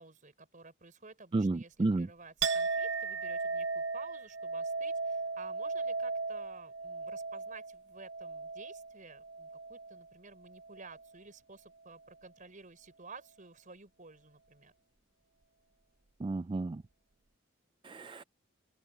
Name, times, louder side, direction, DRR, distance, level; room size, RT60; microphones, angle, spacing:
voice 1, 0.0-14.7, right 4 dB, 40° right, 4.9 m, -53 dB
voice 2, 1.3-2.1 16.2-16.8 17.9-18.2, right 2 dB, 25° right, 0.3 m, -31 dB
Chink clink, 2.4-10.1 10.4-11.1, right 4 dB, 60° right, 1.0 m, -36 dB
open air
head